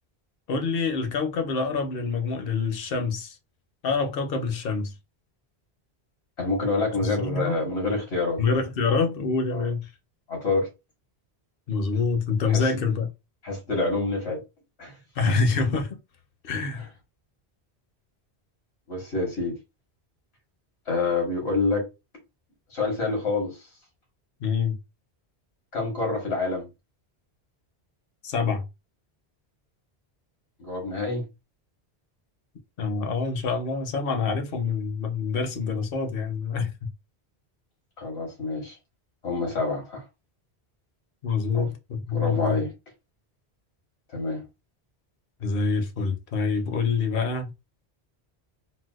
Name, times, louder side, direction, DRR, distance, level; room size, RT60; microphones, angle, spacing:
voice 1, 0.5-3.4 3.8-4.9 7.0-7.6 8.4-9.9 11.7-13.1 15.2-16.0 16.4-16.9 24.4-24.7 28.2-28.6 32.8-36.7 41.2-41.7 42.1-42.6 45.4-47.5, left 4 dB, 65° left, 0.9 m, -26 dB
voice 2, 6.4-8.4 9.5-9.7 10.3-10.7 12.5-12.7 13.4-14.4 14.8-14.9 18.9-19.6 20.9-21.9 22.7-23.6 25.7-26.6 30.6-31.2 38.0-38.8 39.2-40.0 41.5-41.7 42.1-42.7 44.1-44.4, left 3 dB, 85° left, 1.7 m, -27 dB
4.0 x 2.2 x 2.3 m
omnidirectional pair, 1.1 m